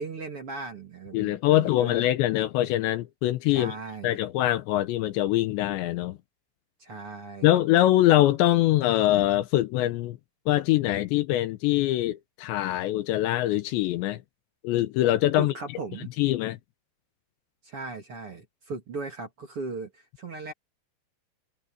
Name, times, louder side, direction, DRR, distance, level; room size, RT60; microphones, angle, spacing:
voice 1, 0.0-2.1 3.5-4.2 6.8-7.6 15.4-16.1 17.6-20.5, right 3 dB, 35° right, 2.7 m, -37 dB
voice 2, 1.1-3.7 4.0-6.2 7.4-10.2 10.5-14.2 14.6-15.5 16.2-16.6, left 14 dB, 75° left, 2.9 m, -23 dB
omnidirectional pair, 5.5 m